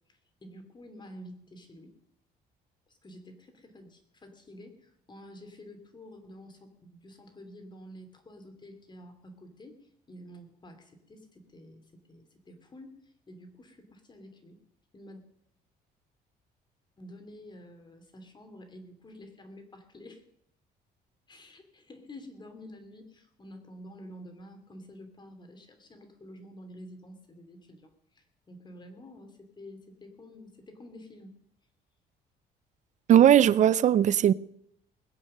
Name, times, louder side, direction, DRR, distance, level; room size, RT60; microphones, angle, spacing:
voice 1, 0.1-1.9 2.9-9.8 10.1-14.6 14.9-15.2 17.0-20.2 21.3-31.3, left 1 dB, 25° left, 2.6 m, -49 dB
voice 2, 33.1-34.3, right 10 dB, 45° right, 0.5 m, -19 dB
20.5 x 8.0 x 6.6 m
cardioid pair, 110°, 17 cm